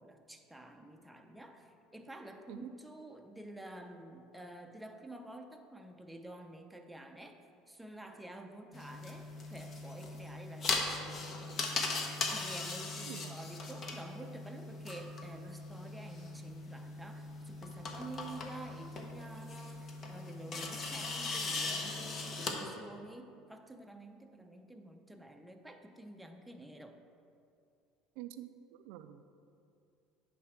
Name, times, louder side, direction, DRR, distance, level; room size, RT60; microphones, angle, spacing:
voice 1, 0.0-7.4 7.7-27.0, right 1 dB, 5° right, 4 dB, 0.6 m, -50 dB
sound 1, 8.7-22.5, left 3 dB, 40° left, 1.0 m, -39 dB
voice 2, 13.0-13.4 28.2-29.2, right 13 dB, 75° right, 10 dB, 0.4 m, -47 dB
9.2 x 3.4 x 6.1 m, 2.5 s
supercardioid pair, 110°, 0 cm